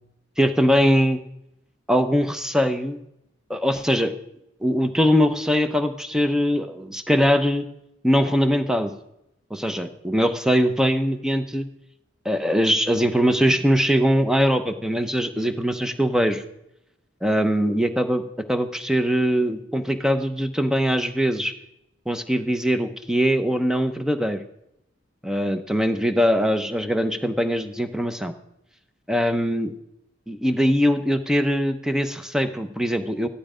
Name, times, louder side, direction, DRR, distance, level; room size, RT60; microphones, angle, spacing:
voice 1, 0.4-1.2 1.9-3.0 3.5-4.1 4.6-7.6 8.0-8.9 9.5-11.6 12.2-16.4 17.2-18.2 18.5-21.5 22.1-24.4 25.2-28.3 29.1-29.7 30.3-33.3, equal, 5° right, 8 dB, 0.8 m, -21 dB
14.5 x 11.5 x 5.0 m, 0.83 s
head